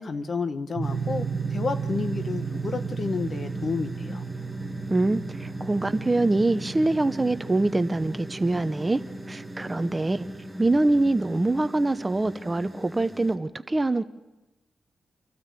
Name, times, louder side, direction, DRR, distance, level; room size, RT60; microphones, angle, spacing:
voice 1, 0.0-4.2, left 4 dB, 50° left, 9 dB, 1.4 m, -30 dB
sound 1, 0.8-13.4, equal, ahead, 1.9 m, -39 dB
sound 2, 0.8-10.5, right 6 dB, 55° right, 1.0 m, -35 dB
sound 3, 1.9-8.8, left 1 dB, 20° left, 3.9 m, -48 dB
voice 2, 4.9-9.0 9.3-10.3 10.6-14.0, right 2 dB, 20° right, 12 dB, 0.8 m, -24 dB
28.0 x 13.0 x 8.4 m, 1.0 s
cardioid pair, 80°, 0 cm